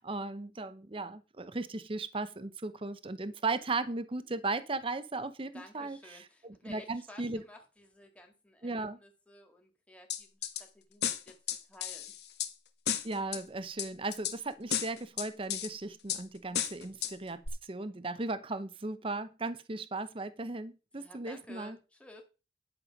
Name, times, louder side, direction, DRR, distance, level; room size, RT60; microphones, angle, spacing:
voice 1, 0.0-6.0 6.4-7.4 8.6-9.0 13.0-21.8, right 3 dB, 30° right, 0.7 m, -36 dB
voice 2, 5.5-10.5 10.7-12.2 20.9-22.2, left 1 dB, 5° left, 1.9 m, -54 dB
sound 1, 10.1-10.6 11.0-12.5 12.9-13.4 13.8-14.4 14.7-15.7 16.1-16.2 16.5-17.1 17.5-17.6, left 9 dB, 65° left, 1.2 m, -33 dB
11.0 x 6.8 x 5.1 m
head